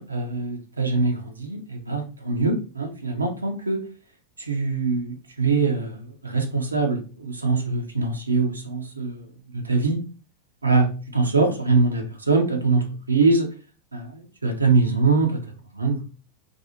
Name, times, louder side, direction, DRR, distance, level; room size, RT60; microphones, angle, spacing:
voice 1, 0.0-3.8 4.4-9.2 9.5-10.0 10.6-13.5 13.9-15.4 15.7-16.0, right 3 dB, 80° right, 3 dB, 0.6 m, -23 dB
2.5 x 2.3 x 2.7 m, 0.36 s
figure-of-eight pair, 90°, 0 cm